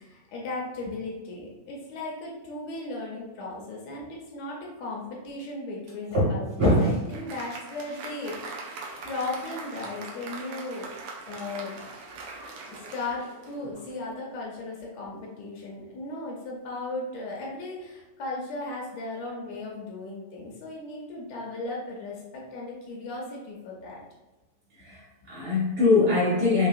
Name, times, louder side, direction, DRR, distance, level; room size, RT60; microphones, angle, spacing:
voice 1, 0.0-8.8 9.0-11.0 11.3-11.9 12.7-24.0, left 2 dB, 75° left, -2 dB, 1.9 m, -36 dB
voice 2, 6.1-7.0 7.9-8.0 24.8-26.7, left 2 dB, 55° right, -8 dB, 2.1 m, -23 dB
Applause, 6.5-14.0, right 3 dB, 90° right, 1.2 m, -42 dB
5.5 x 3.3 x 2.5 m, 1.1 s
omnidirectional pair, 3.4 m